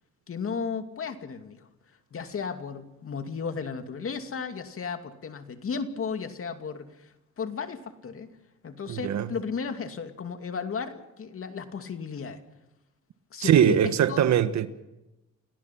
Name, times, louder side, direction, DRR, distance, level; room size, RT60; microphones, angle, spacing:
voice 1, 0.3-1.7 2.1-8.3 8.6-12.4 13.3-14.2, left 5 dB, 45° left, 2.5 m, -34 dB
voice 2, 8.9-9.3 13.4-14.7, right 9 dB, 65° right, 1.5 m, -21 dB
29.5 x 18.0 x 6.0 m
cardioid pair, 90°, 30 cm